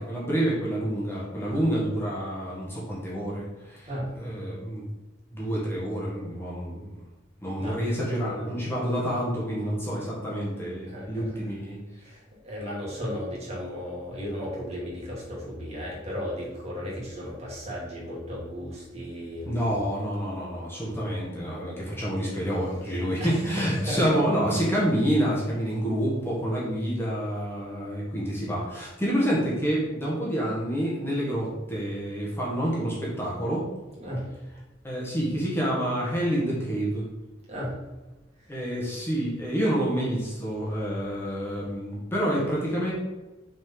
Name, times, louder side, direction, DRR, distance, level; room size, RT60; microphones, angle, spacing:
voice 1, 0.0-3.9 4.2-4.8 5.3-6.9 7.4-11.8 19.4-33.6 34.8-37.0 38.5-42.9, equal, 10° left, -6 dB, 1.7 m, -28 dB
voice 2, 10.9-11.4 12.0-19.7 20.8-21.0 23.2-24.0 34.0-34.3 37.5-37.8 38.4-38.5, equal, 35° right, -5 dB, 2.6 m, -35 dB
6.4 x 4.4 x 5.5 m, 1.1 s
head